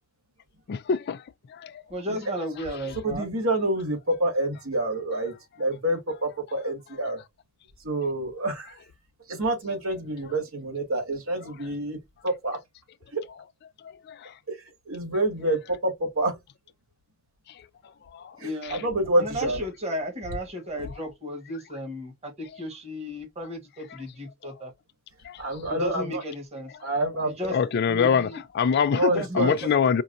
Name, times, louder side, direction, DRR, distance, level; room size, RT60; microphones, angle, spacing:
voice 1, 0.7-1.2 1.5-1.8 13.8-14.3 18.1-18.4 18.6-18.8 25.2-25.4 27.5-28.3 28.5-30.0, left 6 dB, 50° left, 0.3 m, -25 dB
voice 2, 1.9-3.3 18.4-18.8 19.2-24.7 25.7-26.7 27.2-27.5 27.9-28.4 29.1-29.8, equal, 30° right, 1.5 m, -34 dB
voice 3, 3.0-7.2 7.8-8.8 9.3-12.0 12.2-12.6 13.1-13.2 14.5-16.4 18.4-19.6 20.8-20.9 25.4-26.2 26.8-27.7 28.9-29.6, right 1 dB, 80° right, 2.3 m, -27 dB
5.2 x 2.4 x 2.7 m
head